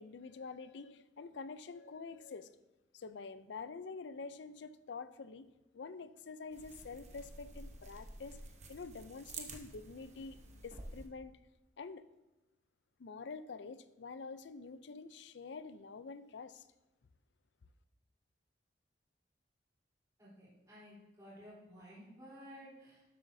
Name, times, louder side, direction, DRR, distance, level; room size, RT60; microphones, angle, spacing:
voice 1, 0.0-2.5 2.9-5.5 5.7-8.4 8.7-11.3 11.8-12.0 13.0-16.7, left 4 dB, 80° left, 14 dB, 0.5 m, -47 dB
sound 1, 6.5-11.1, right 3 dB, 40° right, 1.0 m, -50 dB
voice 2, 20.2-23.0, equal, 20° right, -9 dB, 3.6 m, -54 dB
12.0 x 8.0 x 2.7 m, 1.0 s
head